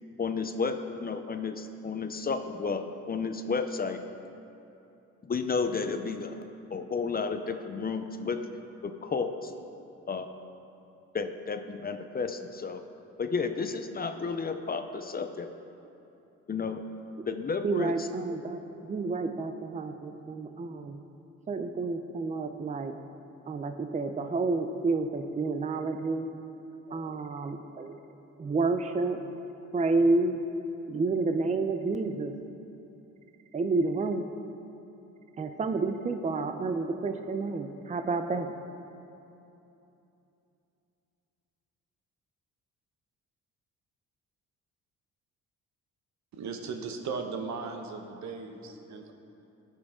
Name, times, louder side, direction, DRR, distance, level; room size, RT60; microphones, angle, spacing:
voice 1, 0.2-2.8 3.1-4.0 5.2-6.4 6.7-8.4 8.8-9.5 10.1-10.3 11.1-12.8 13.2-15.5 16.5-16.8 17.3-18.1, left 5 dB, 30° left, 7 dB, 0.6 m, -32 dB
voice 2, 17.6-18.6 18.9-20.9 21.5-22.9 23.5-26.3 26.9-27.9 28.4-29.2 29.7-30.4 30.9-32.3 33.5-34.2 35.4-38.5, right 3 dB, 25° right, 7 dB, 0.6 m, -29 dB
voice 3, 46.3-49.1, right 4 dB, 65° right, 4 dB, 1.1 m, -37 dB
17.0 x 6.2 x 3.7 m, 2.9 s
cardioid pair, 90°, 30 cm